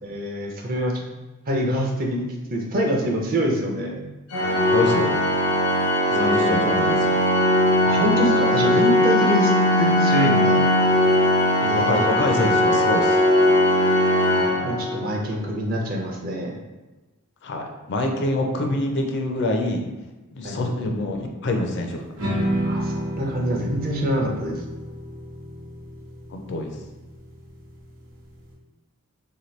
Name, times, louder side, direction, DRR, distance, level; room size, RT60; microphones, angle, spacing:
voice 1, 0.0-1.0 1.5-4.0 6.1-6.8 7.8-9.5 9.8-10.6 11.6-12.2 14.6-16.6 20.4-20.6 22.6-24.6, equal, 40° right, 0 dB, 0.5 m, -25 dB
Organ, 4.3-15.3, left 1 dB, 80° left, 0.8 m, -19 dB
voice 2, 4.7-5.1 6.2-7.1 11.7-13.2 17.4-19.8 20.3-22.0 26.3-26.7, left 2 dB, 50° left, 3 dB, 0.4 m, -25 dB
sound 1, 22.2-28.4, equal, 60° right, 0.9 m, -31 dB
2.8 x 2.6 x 3.1 m, 1.1 s
head